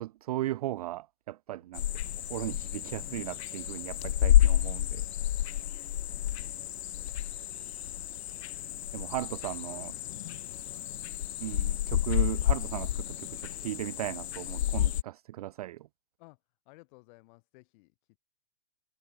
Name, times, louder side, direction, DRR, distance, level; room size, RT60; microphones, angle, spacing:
voice 1, 0.0-1.9 2.3-5.0 8.9-9.9 11.4-15.9, right 15 dB, 35° right, 0.4 m, -36 dB
sound 1, 1.7-15.0, left 12 dB, 65° left, 0.5 m, -30 dB
voice 2, 5.4-6.6 8.9-11.1 16.2-18.2, left 26 dB, 40° left, 6.8 m, -60 dB
hypercardioid pair, 120°, 35 cm